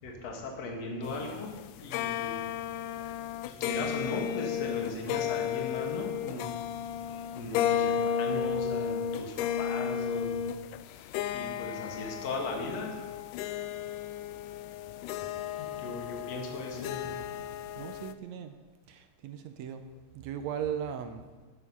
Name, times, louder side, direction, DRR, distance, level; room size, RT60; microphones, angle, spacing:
voice 1, 0.0-2.5 3.4-6.6 7.3-10.4 10.8-12.9 14.3-14.6 15.6-17.2 20.4-20.5, left 3 dB, 55° left, 1 dB, 2.8 m, -38 dB
sound 1, 1.0-18.1, left 8 dB, 85° left, 2.1 m, -33 dB
voice 2, 17.8-18.6 18.9-19.8 20.1-21.5, right 8 dB, 75° right, 8 dB, 1.7 m, -37 dB
20.0 x 6.8 x 5.5 m, 1.3 s
omnidirectional pair, 3.7 m